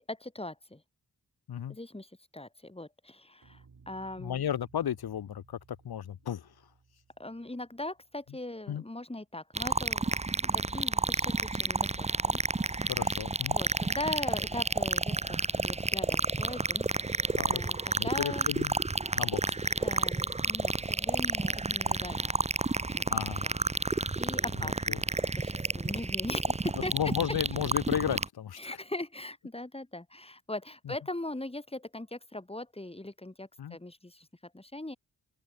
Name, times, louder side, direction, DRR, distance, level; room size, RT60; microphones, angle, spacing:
voice 1, 0.1-0.8 1.7-4.5 7.2-10.1 10.4-12.4 12.7-12.9 13.5-16.9 17.5-18.5 19.8-22.3 22.8-23.0 23.4-23.6 24.2-25.1 25.4-26.9 28.6-35.0, left 1 dB, 15° left, 2.2 m, -40 dB
sound 1, 3.4-8.7, right 5 dB, 60° right, 4.4 m, -60 dB
voice 2, 4.2-5.6 5.8-6.5 8.7-8.8 12.8-13.6 17.3-17.6 18.0-18.7 19.1-19.6 23.1-23.4 24.5-25.0 26.9-28.8 30.8-30.9 33.6-33.8, left 9 dB, 75° left, 0.8 m, -34 dB
sound 2, 9.6-28.3, right 3 dB, 20° right, 0.7 m, -30 dB
open air
wide cardioid pair, 75°, 38 cm